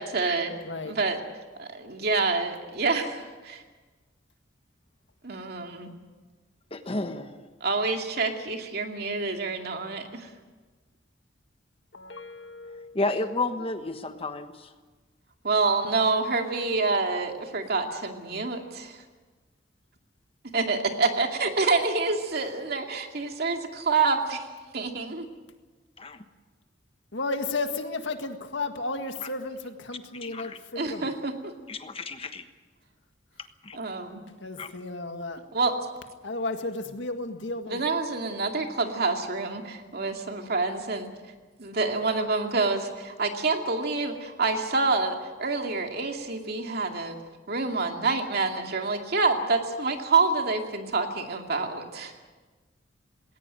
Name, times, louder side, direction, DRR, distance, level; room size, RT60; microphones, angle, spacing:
voice 1, 0.0-0.5 0.8-1.2 2.0-3.6 5.2-5.9 7.6-10.3 15.4-19.0 20.5-24.5 24.7-25.3 30.8-31.5 33.7-34.2 35.5-35.7 37.7-41.1 41.6-47.2 47.5-52.1, right 3 dB, 55° right, 3 dB, 2.5 m, -27 dB
voice 2, 0.6-1.0 11.9-13.0 17.9-18.0 27.1-31.1 34.4-35.5 36.2-37.8, left 3 dB, 80° left, 6 dB, 1.9 m, -33 dB
voice 3, 6.7-7.4 12.9-14.7 26.0-26.2 30.2-30.6 31.7-32.4 33.6-33.8 34.6-34.7, left 2 dB, 30° left, 8 dB, 1.3 m, -31 dB
20.0 x 18.0 x 9.0 m, 1.3 s
head